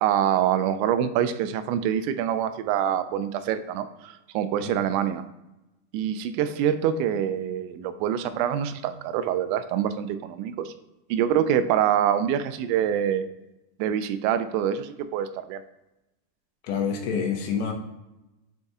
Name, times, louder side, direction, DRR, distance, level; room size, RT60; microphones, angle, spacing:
voice 1, 0.0-5.2 5.9-10.7 11.1-13.2 13.8-15.6, right 9 dB, 85° right, 11 dB, 2.9 m, -25 dB
voice 2, 16.6-17.7, left 6 dB, 80° left, 2 dB, 3.2 m, -27 dB
7.7 x 4.0 x 3.6 m, 0.97 s
omnidirectional pair, 5.2 m